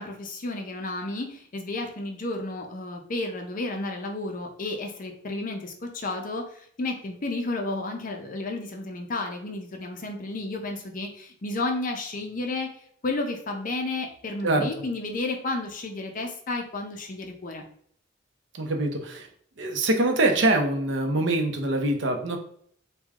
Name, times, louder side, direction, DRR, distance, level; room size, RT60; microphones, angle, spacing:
voice 1, 0.0-12.7 13.0-17.6, left 2 dB, 45° left, 3 dB, 0.6 m, -32 dB
voice 2, 18.5-19.3 19.6-22.4, right 2 dB, 65° right, 4 dB, 0.6 m, -24 dB
3.3 x 2.2 x 3.5 m, 0.62 s
head